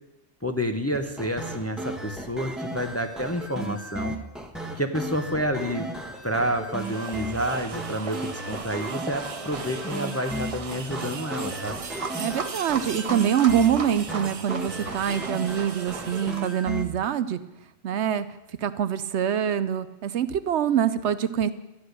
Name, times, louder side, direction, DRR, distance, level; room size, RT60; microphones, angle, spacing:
voice 1, 0.4-4.1 4.8-5.9 6.2-11.8, equal, 15° left, 6 dB, 0.7 m, -29 dB
sound 1, 0.9-16.8, equal, ahead, 1.2 m, -35 dB
sound 2, 6.7-16.8, right 5 dB, 35° right, 0.7 m, -36 dB
voice 2, 12.2-17.4 17.8-18.3 18.6-21.5, right 9 dB, 70° right, 13 dB, 0.9 m, -25 dB
13.0 x 9.7 x 6.6 m, 0.93 s
omnidirectional pair, 1.3 m